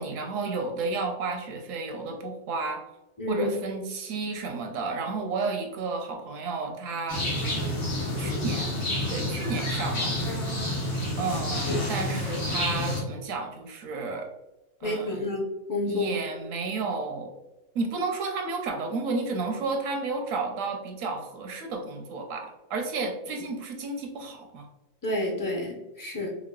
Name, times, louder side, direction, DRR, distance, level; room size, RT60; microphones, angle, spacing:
voice 1, 0.0-2.8 3.3-7.3 8.2-8.7 9.1-10.1 11.2-14.3 14.8-15.3 15.9-17.3 17.7-24.7, right 3 dB, 80° right, 3 dB, 1.0 m, -32 dB
voice 2, 3.2-3.5 14.8-16.2 25.0-26.3, left 1 dB, 30° left, -2 dB, 0.4 m, -29 dB
sound 1, 7.1-13.0, left 1 dB, 65° left, 1.2 m, -29 dB
4.5 x 2.0 x 2.2 m, 0.99 s
omnidirectional pair, 1.4 m